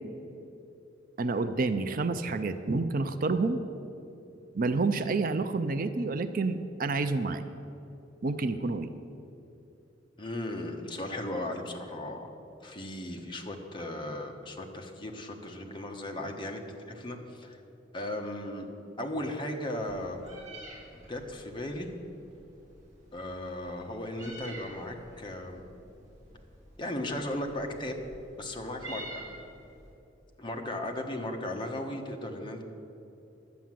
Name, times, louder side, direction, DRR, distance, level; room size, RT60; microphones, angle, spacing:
voice 1, 1.2-3.6 4.5-7.4 8.2-8.9, right 3 dB, 50° right, 9 dB, 0.5 m, -29 dB
voice 2, 10.2-12.3 12.6-16.6 16.9-17.6 17.9-18.7 19.0-20.2 20.9-21.9 23.1-25.6 26.8-28.0 28.4-29.3 30.4-32.6, left 1 dB, 25° left, 2 dB, 1.2 m, -36 dB
Meow, 19.8-29.9, right 1 dB, 20° right, 3.2 m, -49 dB
11.5 x 8.4 x 7.6 m, 2.9 s
head